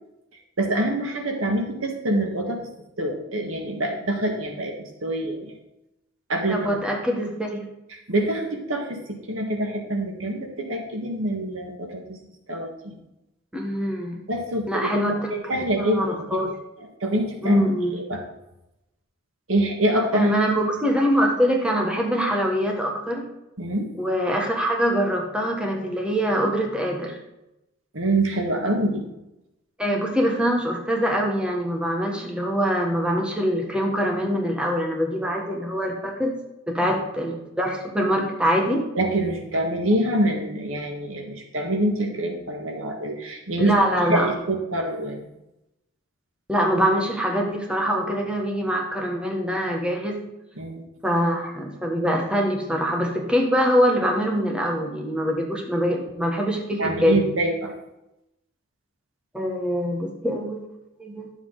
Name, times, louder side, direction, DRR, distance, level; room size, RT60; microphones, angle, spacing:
voice 1, 0.6-2.6 3.0-5.6 6.3-6.7 7.9-12.2 12.5-13.0 14.3-16.4 16.8-17.6 17.9-18.2 19.5-20.3 23.6-23.9 27.9-29.1 38.9-45.3 50.5-50.8 56.8-57.7, right 1 dB, 80° right, 2 dB, 1.7 m, -25 dB
voice 2, 6.5-7.7 13.5-14.2 14.7-16.5 17.4-17.9 20.1-23.3 24.0-27.2 29.8-36.4 36.7-38.9 43.6-44.3 46.5-50.2 51.0-57.2 59.3-60.6 61.0-61.3, equal, 5° right, 0 dB, 1.3 m, -24 dB
10.5 x 7.2 x 3.9 m, 0.91 s
head